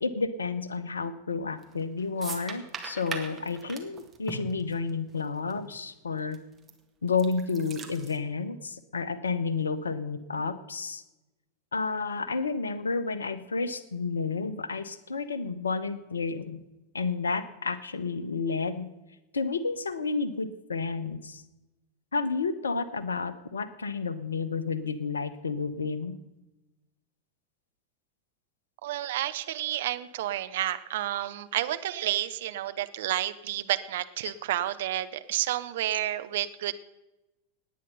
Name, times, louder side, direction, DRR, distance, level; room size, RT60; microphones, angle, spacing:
voice 1, 0.0-6.4 7.0-11.0 11.7-16.6 16.9-18.9 19.3-21.4 22.1-26.1 34.2-34.3, left 4 dB, 70° left, 15 dB, 0.9 m, -31 dB
sound 1, 1.6-1.8 2.2-5.2 5.5-5.6 6.3-6.7 7.1-8.2, right 5 dB, 20° right, 2.0 m, -39 dB
voice 2, 28.8-36.7, right 13 dB, 55° right, 11 dB, 0.8 m, -30 dB
18.5 x 9.4 x 5.5 m, 1.0 s
figure-of-eight pair, 90°, 0 cm